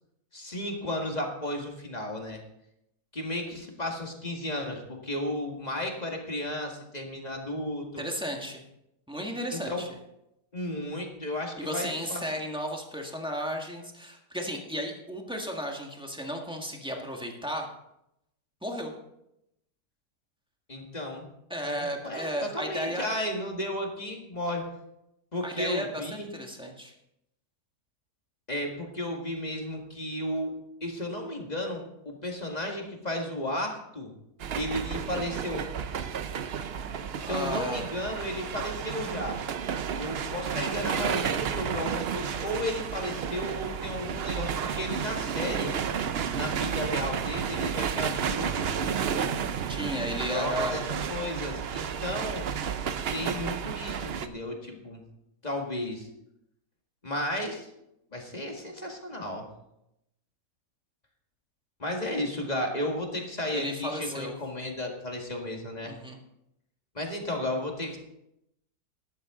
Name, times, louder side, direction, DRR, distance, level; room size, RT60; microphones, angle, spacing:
voice 1, 0.3-2.4 3.1-8.0 9.5-9.9 10.5-12.2 20.7-21.3 21.6-24.7 25.3-26.3 28.5-30.5 30.8-34.1 34.5-35.6 37.2-39.4 40.0-45.8 46.3-49.5 50.3-52.5 53.1-55.0 55.4-56.1 57.0-57.7 58.1-59.5 61.8-65.9 66.9-68.0, left 1 dB, 25° left, 1 dB, 1.9 m, -34 dB
voice 2, 8.0-8.6 9.1-9.9 11.6-17.7 18.6-18.9 21.5-23.1 25.4-26.9 37.3-37.9 49.7-50.8 63.5-64.3 65.8-66.2, equal, 5° right, 0 dB, 1.6 m, -34 dB
sound 1, 34.4-54.3, right 7 dB, 60° right, 0.6 m, -32 dB
13.5 x 11.0 x 3.8 m, 0.84 s
omnidirectional pair, 1.8 m